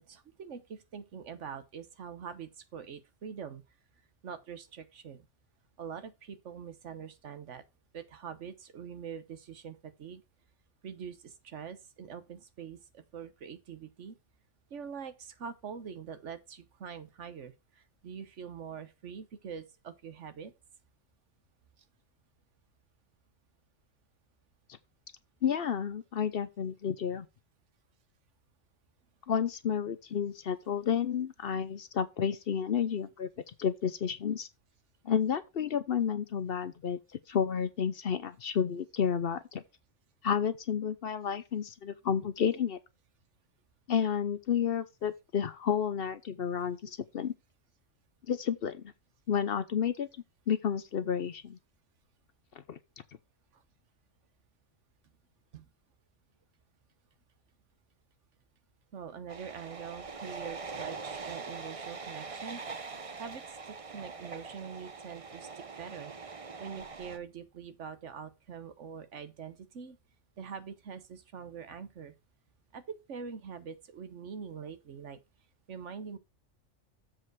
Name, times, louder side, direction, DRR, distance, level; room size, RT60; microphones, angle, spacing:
voice 1, 0.0-3.6 4.2-5.2 5.8-7.6 7.9-10.2 10.8-14.2 14.7-20.5 55.5-55.6 58.9-70.0 70.4-72.1 72.7-75.2 75.7-76.2, right 7 dB, 70° right, 1.4 m, -44 dB
voice 2, 25.4-27.3 29.3-34.5 35.0-37.0 37.3-39.6 40.2-42.8 43.9-47.3 48.3-48.8 49.3-50.1 50.5-51.6 52.7-52.8, left 7 dB, 55° left, 0.8 m, -31 dB
sound 1, 59.3-67.2, right 4 dB, 30° right, 0.8 m, -43 dB
7.5 x 4.6 x 6.2 m
omnidirectional pair, 1.3 m